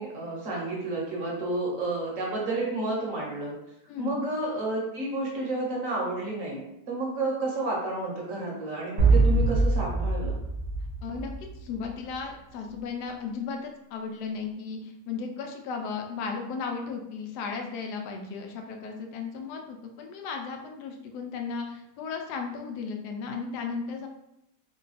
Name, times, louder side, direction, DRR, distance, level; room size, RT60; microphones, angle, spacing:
voice 1, 0.0-3.5 4.0-6.6 6.9-10.3, right 2 dB, 60° right, -3 dB, 1.1 m, -31 dB
voice 2, 3.9-4.2 11.0-11.3 11.6-24.1, left 5 dB, 80° left, 3 dB, 1.2 m, -35 dB
sound 1, 9.0-11.8, right 3 dB, 45° right, 0.7 m, -23 dB
3.1 x 2.2 x 3.9 m, 0.85 s
omnidirectional pair, 1.7 m